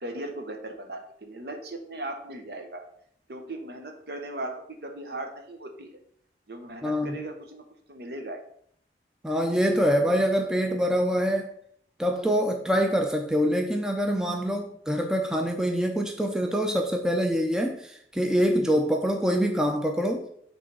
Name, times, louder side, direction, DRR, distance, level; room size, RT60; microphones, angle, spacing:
voice 1, 0.0-2.8 3.3-6.0 6.5-8.4, right 1 dB, 60° right, 5 dB, 0.9 m, -38 dB
voice 2, 6.8-7.2 9.2-11.5 12.0-20.2, equal, 5° right, 2 dB, 0.5 m, -25 dB
6.2 x 3.3 x 5.4 m, 0.66 s
head